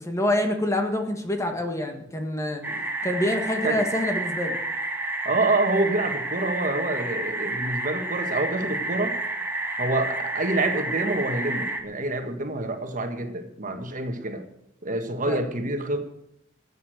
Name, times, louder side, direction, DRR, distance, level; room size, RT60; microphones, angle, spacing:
voice 1, 0.0-2.6 3.0-4.6 15.2-15.4, left 1 dB, 15° left, 4 dB, 1.6 m, -26 dB
sound 1, 2.6-11.8, right 2 dB, 10° right, 1.8 m, -30 dB
voice 2, 5.2-9.2 9.8-14.4 14.8-16.0, right 2 dB, 45° right, 6 dB, 1.6 m, -27 dB
15.0 x 8.4 x 7.9 m, 0.77 s
head